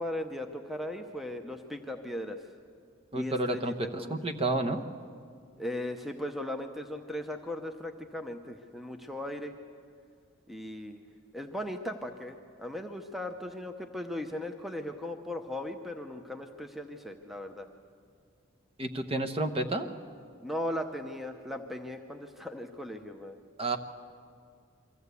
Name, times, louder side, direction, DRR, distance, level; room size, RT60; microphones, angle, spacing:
voice 1, 0.0-2.4 3.1-4.2 5.6-9.5 10.5-11.0 11.3-17.7 20.4-23.4, left 1 dB, ahead, 5 dB, 0.7 m, -38 dB
voice 2, 3.1-4.8 18.8-19.9 23.6-23.8, right 2 dB, 30° right, 5 dB, 0.9 m, -30 dB
23.5 x 14.5 x 8.3 m, 2.2 s
head